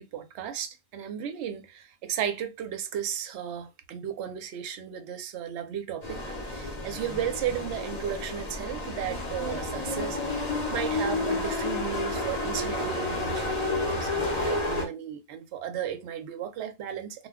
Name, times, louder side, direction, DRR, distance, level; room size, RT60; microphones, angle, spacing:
voice 1, 0.0-17.3, right 9 dB, 65° right, 0.7 m, -35 dB
sound 1, 6.0-14.8, left 2 dB, 35° left, 0.7 m, -31 dB
2.2 x 2.2 x 3.4 m
omnidirectional pair, 1.4 m